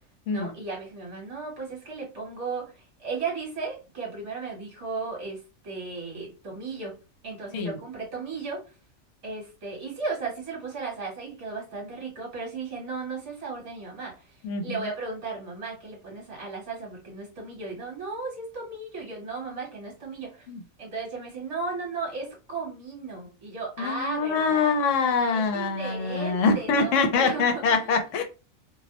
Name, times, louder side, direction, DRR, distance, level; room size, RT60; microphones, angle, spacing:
voice 1, 0.3-6.9 7.2-8.6 9.2-14.3 14.6-20.5 20.8-24.8 25.3-27.8, right 4 dB, 55° right, 1.3 m, -35 dB
voice 2, 14.4-14.9 20.5-20.6 23.8-28.2, left 4 dB, 70° left, 0.9 m, -24 dB
2.5 x 2.0 x 2.7 m
omnidirectional pair, 1.5 m